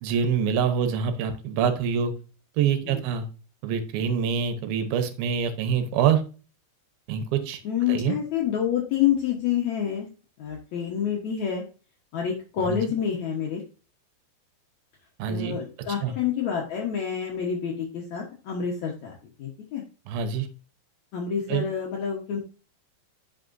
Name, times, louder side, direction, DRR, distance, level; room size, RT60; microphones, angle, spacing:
voice 1, 0.0-2.1 2.6-3.3 3.6-6.2 7.1-7.6 7.9-8.2 12.7-12.8 15.2-15.6 16.0-16.1 20.1-20.5 21.5-21.7, right 7 dB, 70° right, 8 dB, 2.4 m, -25 dB
voice 2, 7.6-10.1 10.4-11.6 12.1-13.6 15.3-19.8 21.1-22.4, left 8 dB, 80° left, -1 dB, 1.6 m, -28 dB
11.5 x 5.8 x 2.6 m, 0.36 s
omnidirectional pair, 5.2 m